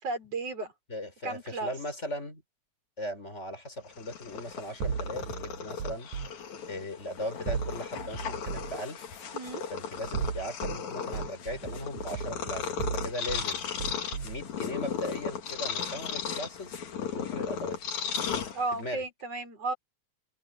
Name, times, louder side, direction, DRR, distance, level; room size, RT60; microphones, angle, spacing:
voice 1, 0.0-0.7 1.2-1.7 9.3-9.6 18.5-19.8, right 3 dB, 55° right, 5.6 m, -34 dB
voice 2, 0.9-2.4 3.0-6.1 6.7-9.0 9.7-13.6 14.2-16.8 17.1-17.8 18.7-19.0, left 1 dB, 20° left, 5.0 m, -38 dB
Purr, 3.8-19.0, left 7 dB, 80° left, 3.5 m, -36 dB
sound 1, 4.8-6.3 7.5-8.8 10.0-10.8 11.1-13.5 13.8-14.4, right 6 dB, 90° right, 3.7 m, -35 dB
open air
omnidirectional pair, 3.3 m